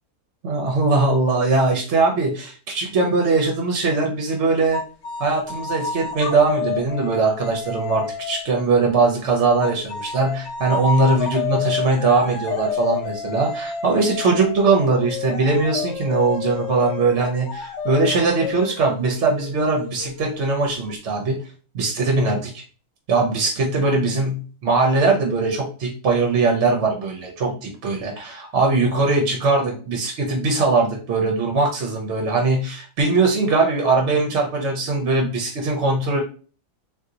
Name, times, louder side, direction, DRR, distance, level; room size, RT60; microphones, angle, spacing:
voice 1, 0.4-4.8 5.2-21.4 21.7-22.6 23.1-36.2, right 3 dB, 55° right, 0 dB, 0.9 m, -21 dB
sound 1, 4.7-8.6 9.6-20.9, left 5 dB, 60° left, 0.8 m, -30 dB
2.8 x 2.5 x 3.7 m, 0.39 s
omnidirectional pair, 1.6 m